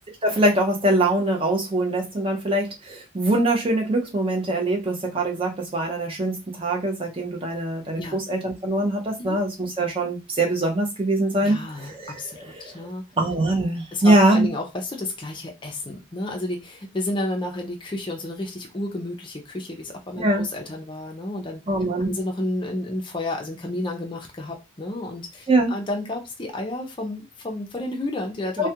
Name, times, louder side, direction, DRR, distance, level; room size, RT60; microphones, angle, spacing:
voice 1, 0.2-12.9 13.2-14.5 20.2-20.5 21.7-22.1 25.5-25.7 28.6-28.7, right 1 dB, 25° right, 0 dB, 0.6 m, -23 dB
voice 2, 11.4-13.0 13.9-21.6 22.0-28.7, left 1 dB, 20° left, 2 dB, 0.4 m, -31 dB
2.3 x 2.1 x 2.8 m, 0.26 s
head